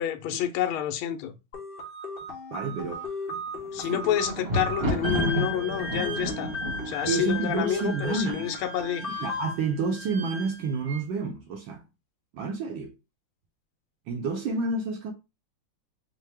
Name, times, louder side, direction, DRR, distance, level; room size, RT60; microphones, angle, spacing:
voice 1, 0.0-1.3 3.7-6.5 6.9-9.0, left 10 dB, 80° left, 1.4 m, -29 dB
sound 1, 1.5-9.5, left 3 dB, 65° left, 0.5 m, -36 dB
voice 2, 2.5-3.4 3.8-4.0 7.1-8.5 9.1-11.9 12.3-12.9 14.1-15.1, right 4 dB, 75° right, 1.2 m, -30 dB
Thunder, 3.5-8.6 9.3-9.8 10.1-10.2, equal, 40° right, 0.9 m, -31 dB
Wind instrument woodwind instrument, 5.0-11.0, right 2 dB, 55° right, 1.1 m, -40 dB
4.6 x 2.1 x 3.3 m
omnidirectional pair, 2.4 m